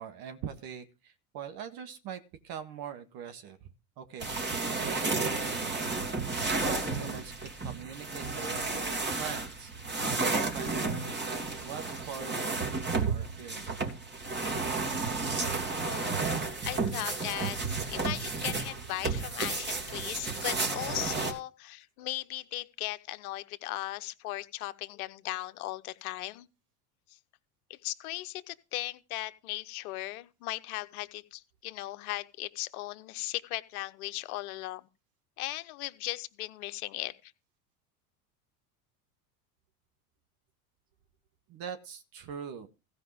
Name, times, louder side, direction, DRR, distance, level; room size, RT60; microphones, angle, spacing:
voice 1, 0.0-3.7 4.0-4.3 4.8-6.0 6.6-13.7 41.5-42.7, right 7 dB, 50° right, 1.7 m, -43 dB
sound 1, 4.2-21.3, right 3 dB, 25° right, 2.7 m, -32 dB
voice 2, 15.8-16.4 16.7-17.6 17.9-26.5 27.7-34.9 35.4-37.3, left 17 dB, 70° left, 0.9 m, -37 dB
15.5 x 5.3 x 5.0 m
hypercardioid pair, 85°, 44 cm